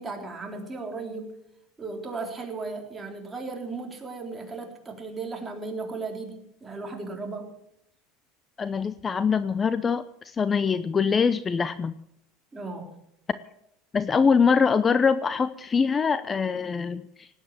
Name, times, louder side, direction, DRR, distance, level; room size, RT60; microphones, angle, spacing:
voice 1, 0.0-1.4 1.8-7.6 12.5-13.0, right 3 dB, 20° right, 2 dB, 3.7 m, -36 dB
voice 2, 8.6-11.9 13.9-17.3, left 5 dB, 25° left, 14 dB, 0.7 m, -23 dB
18.5 x 9.1 x 7.4 m, 0.77 s
supercardioid pair, 115°, 0 cm